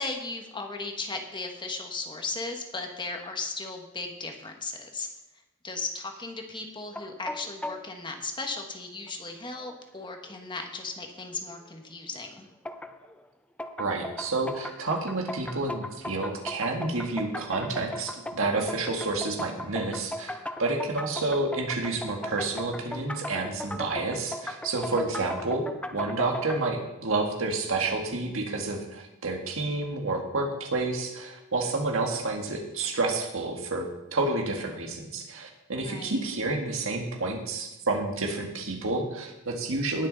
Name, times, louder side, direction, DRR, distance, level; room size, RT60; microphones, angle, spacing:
voice 1, 0.0-5.1 5.6-12.5 24.9-25.3 35.8-36.2, left 3 dB, 20° left, 3 dB, 1.4 m, -36 dB
sound 1, 6.9-7.9 9.1-9.2 9.6-9.7 10.3-10.4 12.6-13.1 13.6-26.6, left 1 dB, 5° left, 0.5 m, -38 dB
voice 2, 13.8-25.6 25.9-40.1, right 2 dB, 70° right, 2 dB, 1.9 m, -29 dB
19.0 x 6.5 x 4.1 m, 0.99 s
head